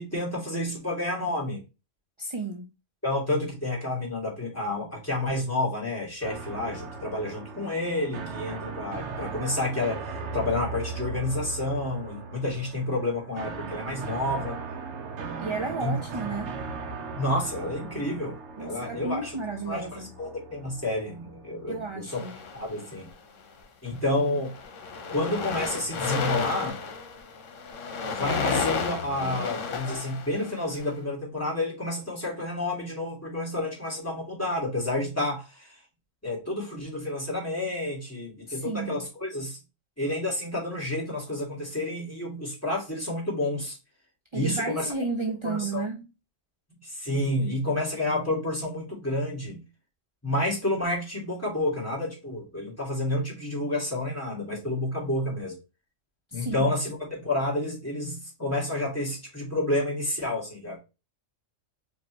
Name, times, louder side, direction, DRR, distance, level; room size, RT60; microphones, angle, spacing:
voice 1, 0.0-1.6 3.0-14.6 15.8-16.0 17.2-19.4 19.7-22.2 22.5-23.1 23.8-24.5 25.1-26.8 28.1-35.8 36.2-39.6 40.0-43.8 44.3-44.9 45.4-45.9 46.8-49.6 50.2-55.6 56.3-60.8, left 1 dB, 10° left, 2.0 m, -30 dB
voice 2, 2.2-2.7 15.4-16.6 18.6-20.1 21.7-22.3 38.5-39.0 44.3-46.1 56.3-56.6, right 3 dB, 40° right, 0.4 m, -32 dB
sound 1, 6.2-22.1, right 4 dB, 70° right, 0.9 m, -38 dB
sound 2, 22.1-23.1 23.9-24.1 24.3-30.8, left 5 dB, 75° left, 1.2 m, -32 dB
5.0 x 2.8 x 3.0 m
omnidirectional pair, 1.3 m